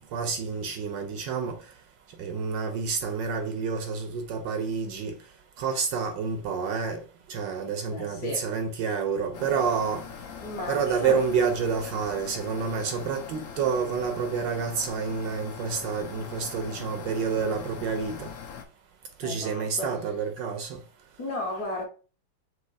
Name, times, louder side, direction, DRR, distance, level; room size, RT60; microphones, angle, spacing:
voice 1, 0.1-1.6 2.2-5.1 5.6-7.0 7.3-10.0 10.7-18.3 19.2-20.8, right 5 dB, 70° right, 1.2 m, -29 dB
voice 2, 7.9-8.5 10.4-11.2 19.2-20.0 21.2-21.9, left 1 dB, 55° left, 1.5 m, -34 dB
sound 1, 9.3-18.6, left 6 dB, 70° left, 0.7 m, -42 dB
6.3 x 2.9 x 2.6 m
omnidirectional pair, 2.2 m